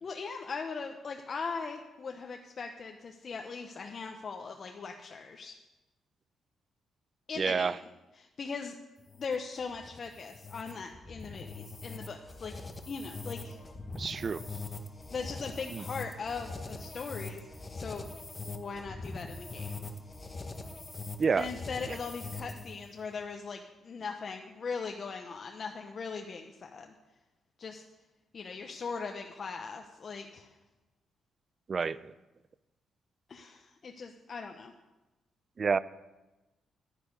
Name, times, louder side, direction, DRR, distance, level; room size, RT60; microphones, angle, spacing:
voice 1, 0.0-5.5 7.3-7.8 8.2-8.8 9.2-12.6 12.9-13.6 15.1-17.5 17.7-18.1 18.4-19.9 21.4-26.9 27.6-27.8 28.3-30.5 33.3-34.7, left 5 dB, 45° left, 4 dB, 0.7 m, -39 dB
voice 2, 7.4-7.8 13.9-14.4 15.7-15.8 21.2-21.5 21.9-22.0 31.7-32.1 35.6-35.8, right 5 dB, 40° right, 18 dB, 0.4 m, -29 dB
sound 1, 9.0-22.8, left 3 dB, 25° left, 1.1 m, -42 dB
10.0 x 9.4 x 5.2 m, 1.1 s
cardioid pair, 100°, 0 cm